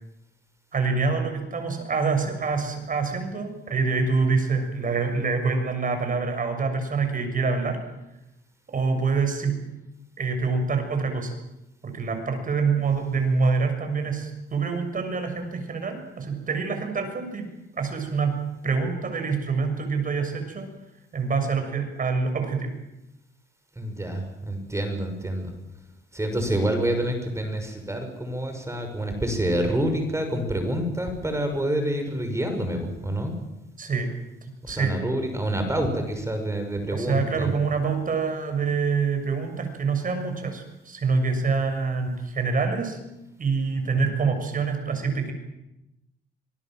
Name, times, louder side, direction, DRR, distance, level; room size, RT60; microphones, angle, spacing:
voice 1, 0.7-7.8 8.7-9.6 10.2-11.3 11.8-17.5 17.8-18.4 18.6-20.7 21.1-22.7 33.8-34.1 34.7-35.0 36.9-43.0 43.4-45.3, right 4 dB, 45° right, 6 dB, 6.9 m, -26 dB
voice 2, 23.8-25.5 26.1-33.3 34.6-37.5, right 1 dB, 15° right, 5 dB, 6.2 m, -27 dB
26.0 x 20.5 x 7.8 m, 0.92 s
cardioid pair, 90°, 20 cm